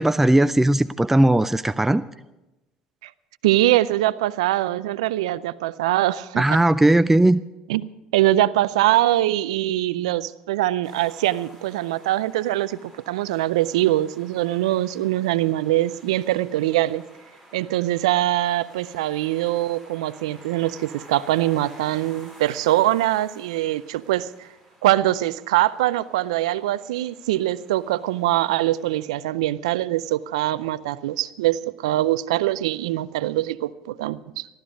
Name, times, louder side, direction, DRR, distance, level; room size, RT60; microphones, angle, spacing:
voice 1, 0.0-2.0 6.4-7.4, right 1 dB, 10° right, 0.4 m, -18 dB
voice 2, 3.4-6.4 7.7-17.0 17.5-24.5 24.8-34.5, right 15 dB, 85° right, 0.4 m, -23 dB
sound 1, 10.8-29.0, right 1 dB, 10° left, 6.7 m, -51 dB
14.5 x 13.0 x 5.2 m
hypercardioid pair, 70°, 3 cm